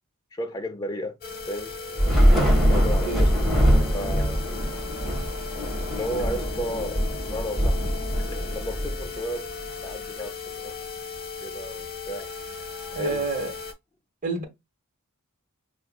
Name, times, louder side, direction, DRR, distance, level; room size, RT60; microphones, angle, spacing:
voice 1, 0.3-1.2 1.5-1.8 2.6-3.5 3.9-4.9 5.9-7.9 8.2-9.5 9.8-10.8 11.4-12.3 13.0-13.2, equal, 20° left, 0.4 m, -34 dB
sound 1, 1.2-13.7, left 5 dB, 45° left, 1.0 m, -37 dB
Thunder / Rain, 2.0-9.5, equal, ahead, 1.5 m, -23 dB
voice 2, 12.9-13.5 14.2-14.4, right 3 dB, 40° right, 1.4 m, -28 dB
5.7 x 2.5 x 2.3 m
head